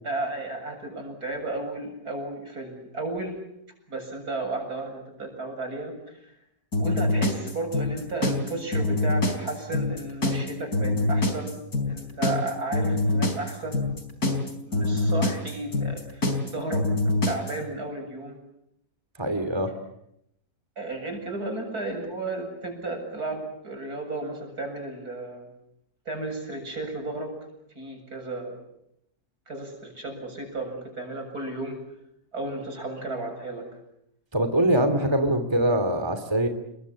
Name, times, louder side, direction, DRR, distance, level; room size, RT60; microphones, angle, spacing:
voice 1, 0.0-3.4 3.9-5.9 6.2-6.3 6.8-11.6 11.9-13.8 14.6-16.8 17.3-18.4 20.8-25.5 26.1-27.3 27.7-28.6 29.5-31.8 32.3-33.7 35.0-35.1, right 2 dB, 70° right, 4 dB, 8.2 m, -33 dB
sound 1, 6.7-17.6, left 2 dB, 70° left, 4.9 m, -25 dB
voice 2, 19.2-19.7 34.3-36.5, right 1 dB, 15° right, 8 dB, 2.8 m, -23 dB
30.0 x 22.5 x 8.7 m, 0.79 s
omnidirectional pair, 1.7 m